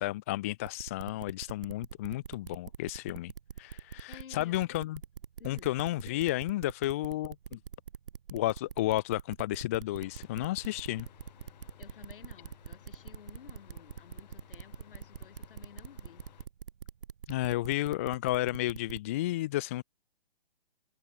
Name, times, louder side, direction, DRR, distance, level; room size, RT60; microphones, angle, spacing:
voice 1, 0.0-3.3 3.6-5.0 5.4-7.6 8.3-11.1 17.3-19.8, left 16 dB, 15° left, 0.5 m, -32 dB
sound 1, 0.7-19.0, right 8 dB, 65° right, 5.8 m, -44 dB
voice 2, 4.1-4.6 5.4-5.7 11.8-16.3, left 7 dB, 65° left, 7.0 m, -53 dB
sound 2, 10.0-16.5, left 11 dB, 45° left, 3.3 m, -57 dB
hypercardioid pair, 155°, 30 cm